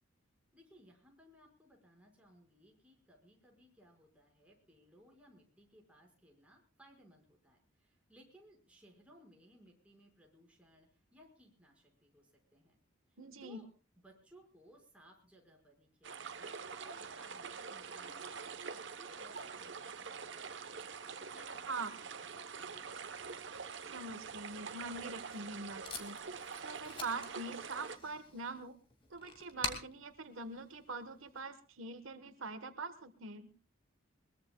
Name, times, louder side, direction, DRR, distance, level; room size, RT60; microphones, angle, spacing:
voice 1, 0.5-12.8 13.1-13.7 14.0-20.9 21.2-22.9, equal, 5° right, -1 dB, 5.3 m, -63 dB
voice 2, 13.2-13.6 21.6-21.9 23.9-26.2 26.6-28.7 29.1-33.5, right 3 dB, 80° right, 9 dB, 1.3 m, -43 dB
sound 1, 16.0-28.0, right 5 dB, 60° right, 1.0 m, -45 dB
Packing tape duct tape, 24.9-31.4, left 4 dB, 25° left, 2.3 m, -47 dB
22.0 x 22.0 x 2.3 m, 0.35 s
head